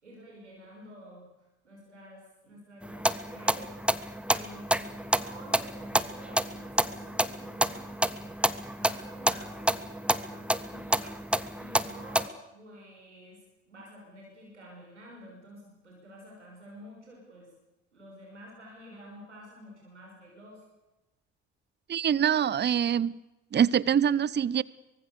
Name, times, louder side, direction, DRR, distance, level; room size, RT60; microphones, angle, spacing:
voice 1, 0.0-3.8 4.3-13.4 13.7-17.5 17.9-20.6, equal, 90° right, 5.9 m, -50 dB
sound 1, 2.8-12.3, right 1 dB, 5° right, 1.5 m, -29 dB
voice 2, 21.9-23.2 23.5-24.6, right 8 dB, 30° right, 0.8 m, -24 dB
24.5 x 24.0 x 6.9 m
figure-of-eight pair, 45°, 34 cm